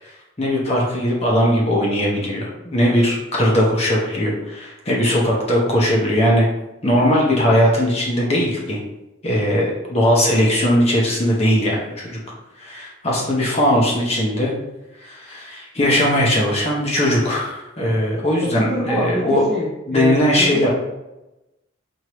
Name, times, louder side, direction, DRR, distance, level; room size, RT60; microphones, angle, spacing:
voice 1, 0.0-6.5 6.8-8.8 9.2-12.2 12.6-14.5 15.0-19.4 19.9-20.7, equal, 30° left, -3 dB, 0.8 m, -19 dB
voice 2, 18.4-20.7, right 1 dB, ahead, -8 dB, 0.7 m, -26 dB
4.6 x 2.7 x 3.0 m, 0.97 s
head